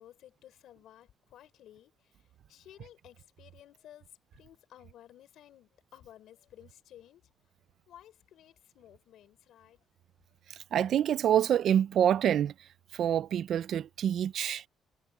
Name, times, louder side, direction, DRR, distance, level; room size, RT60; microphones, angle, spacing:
voice 1, 0.0-7.3 7.9-9.8, left 12 dB, 80° left, 4.7 m, -55 dB
voice 2, 10.7-12.5 12.9-14.6, right 10 dB, 70° right, 0.6 m, -26 dB
cardioid pair, 90°, 0 cm